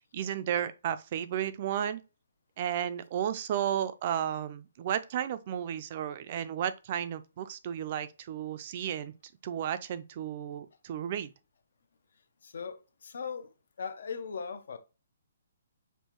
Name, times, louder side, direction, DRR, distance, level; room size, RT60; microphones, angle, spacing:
voice 1, 0.1-2.0 2.6-9.1 9.4-11.3, right 10 dB, 40° right, 0.4 m, -33 dB
voice 2, 12.4-13.5 13.8-14.8, left 6 dB, 70° left, 0.7 m, -39 dB
5.4 x 2.2 x 3.0 m
hypercardioid pair, 160°, 0 cm